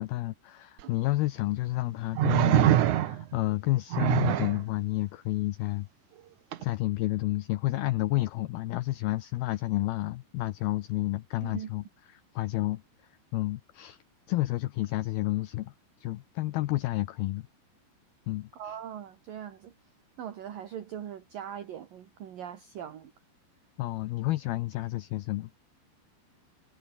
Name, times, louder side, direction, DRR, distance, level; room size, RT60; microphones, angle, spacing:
voice 1, 0.0-5.9 6.6-11.8 12.1-12.8 13.3-14.0 14.3-15.7 16.0-17.5 18.3-18.8 23.8-25.5, left 17 dB, 85° left, 2.2 m, -30 dB
sound 1, 0.8-0.9 2.1-3.4 3.9-4.6 6.5-6.6, right 12 dB, 85° right, 1.6 m, -24 dB
voice 2, 18.5-19.7 20.2-23.1, right 9 dB, 55° right, 3.2 m, -40 dB
omnidirectional pair, 5.5 m